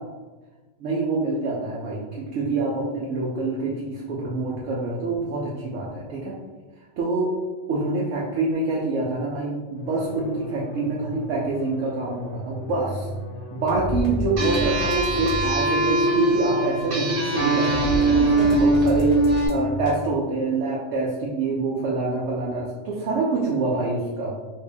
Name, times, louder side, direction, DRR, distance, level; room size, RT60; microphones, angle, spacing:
voice 1, 0.8-6.3 7.0-7.3 7.7-13.1 13.5-24.3, right 3 dB, 85° right, -4 dB, 1.0 m, -26 dB
sound 1, 9.8-19.9, left 1 dB, 55° left, 0.8 m, -32 dB
sound 2, 14.4-19.5, right 2 dB, 50° right, 1.0 m, -21 dB
2.9 x 2.6 x 3.4 m, 1.2 s
omnidirectional pair, 1.2 m